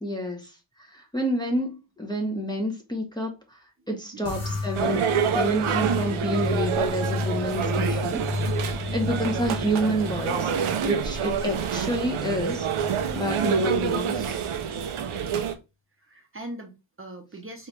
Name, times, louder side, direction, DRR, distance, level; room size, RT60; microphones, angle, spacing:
voice 1, 0.0-5.0 5.3-8.3 8.9-12.7 13.1-14.4, equal, 10° left, 0.9 m, -29 dB
voice 2, 3.8-4.6 8.7-9.1 11.1-11.3 15.0-15.5 16.0-17.7, right 1 dB, 25° right, 0.9 m, -43 dB
sound 1, 4.3-14.9, left 3 dB, 30° left, 1.4 m, -33 dB
sound 2, 4.7-15.6, right 7 dB, 90° right, 0.8 m, -27 dB
4.5 x 3.1 x 3.3 m
wide cardioid pair, 150°, 47 cm